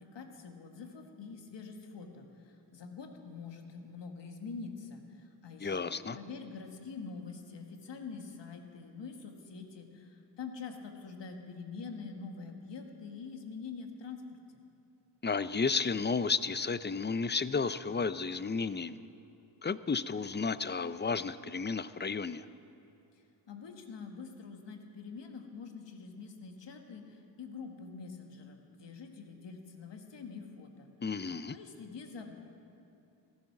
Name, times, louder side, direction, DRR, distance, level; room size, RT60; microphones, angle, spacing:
voice 1, 0.0-14.2 23.5-30.9 31.5-32.3, left 5 dB, 75° left, 3 dB, 1.8 m, -45 dB
voice 2, 5.6-6.2 15.2-19.0 19.6-22.5 31.0-31.6, left 4 dB, 25° left, 14 dB, 0.6 m, -32 dB
15.5 x 15.0 x 6.0 m, 2.9 s
cardioid pair, 60°, 44 cm